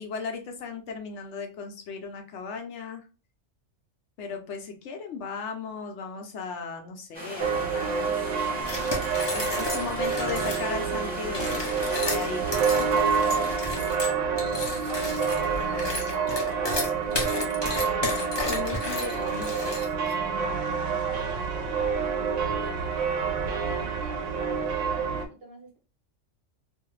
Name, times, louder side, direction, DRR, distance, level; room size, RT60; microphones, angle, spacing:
voice 1, 0.0-3.1 4.2-8.1 9.3-13.0 18.5-19.5, left 5 dB, 75° left, 4 dB, 0.9 m, -36 dB
sound 1, 7.1-13.6, right 1 dB, 10° right, 0.7 m, -39 dB
sound 2, 7.4-25.3, right 5 dB, 80° right, 0.9 m, -28 dB
sound 3, 8.7-10.7 11.2-20.1, left 2 dB, 30° left, 0.5 m, -33 dB
voice 2, 9.5-10.7 13.8-16.0 16.6-23.5 24.0-25.8, right 2 dB, 45° right, -2 dB, 1.2 m, -45 dB
2.6 x 2.3 x 3.0 m, 0.34 s
omnidirectional pair, 1.3 m